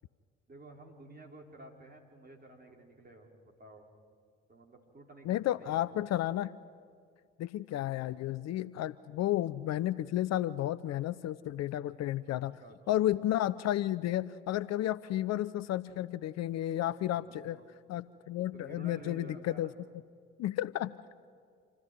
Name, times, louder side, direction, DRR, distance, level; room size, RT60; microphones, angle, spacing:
voice 1, 0.5-3.3 3.6-3.9 4.5-5.8 10.9-11.0 12.3-13.0 17.1-17.6 18.5-19.7, right 1 dB, 25° right, 1 dB, 4.4 m, -52 dB
voice 2, 5.3-6.5 7.4-12.6 12.9-17.6 17.9-19.7 20.4-20.9, left 13 dB, 50° left, 17 dB, 0.6 m, -32 dB
27.0 x 14.0 x 9.2 m, 2.2 s
figure-of-eight pair, 45°, 35 cm